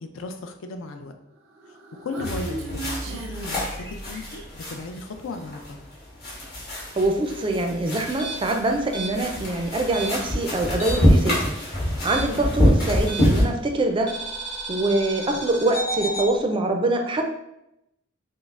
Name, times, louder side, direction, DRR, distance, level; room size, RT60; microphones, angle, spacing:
voice 1, 0.1-1.1 1.7-5.8, left 3 dB, 75° left, 6 dB, 0.4 m, -36 dB
Human voice, 1.5-4.5, right 2 dB, 85° right, 0.5 m, -35 dB
sound 1, 2.2-13.4, equal, 55° left, 1.2 m, -25 dB
voice 2, 6.9-11.6 12.0-14.2 14.7-17.3, right 2 dB, 25° right, 4 dB, 0.3 m, -24 dB
sound 2, 8.1-11.2 11.5-13.5 14.1-16.3, right 2 dB, 35° left, 0.8 m, -33 dB
5.2 x 2.0 x 2.4 m, 0.85 s
head